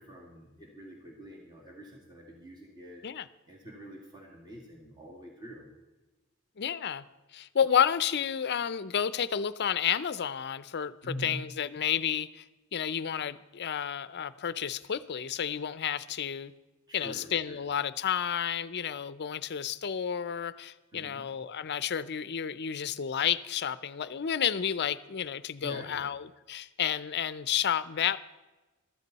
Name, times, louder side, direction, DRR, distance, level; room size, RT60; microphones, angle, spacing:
voice 1, 0.0-3.0 3.5-5.7 11.0-11.4 16.9-17.6 20.9-21.3 25.6-26.1, equal, 20° right, -1 dB, 2.2 m, -45 dB
voice 2, 6.6-7.0 7.3-10.9 11.2-12.4 12.7-16.5 16.9-28.2, left 8 dB, 50° left, 16 dB, 0.5 m, -31 dB
14.0 x 13.5 x 4.1 m, 1.1 s
head